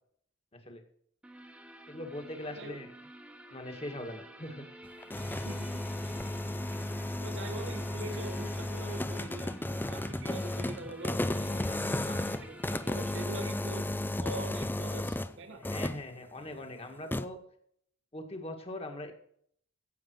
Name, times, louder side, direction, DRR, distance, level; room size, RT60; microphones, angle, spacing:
voice 1, 0.5-0.8 1.9-2.9 3.5-4.6 7.9-8.0 15.6-17.4 18.1-19.1, left 1 dB, 30° left, 5 dB, 2.0 m, -41 dB
sound 1, 1.2-13.2, right 1 dB, 5° right, 1.2 m, -51 dB
sound 2, 4.8-15.3 15.6-16.1 17.1-17.3, left 1 dB, 10° left, 0.5 m, -34 dB
voice 2, 5.5-5.8 7.2-9.5 9.9-13.9 14.2-15.6, right 2 dB, 65° right, 6 dB, 2.1 m, -43 dB
16.5 x 7.4 x 4.7 m, 0.65 s
head